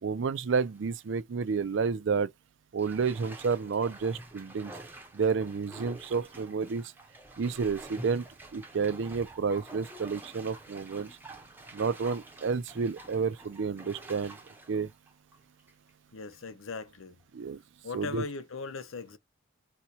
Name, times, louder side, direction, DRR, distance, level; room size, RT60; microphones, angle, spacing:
voice 1, 0.0-2.3 2.7-4.7 5.1-6.8 7.4-8.3 8.5-11.2 11.7-14.4 14.7-14.9 17.3-17.6 17.9-18.2, right 5 dB, 65° right, 0.4 m, -30 dB
Bathtub (filling or washing), 0.6-1.0 1.5-1.6 2.8-15.9 16.3-16.4, right 1 dB, 10° right, 0.7 m, -48 dB
voice 2, 16.1-17.2 17.8-19.2, left 4 dB, 85° left, 0.7 m, -39 dB
4.2 x 2.2 x 2.7 m
head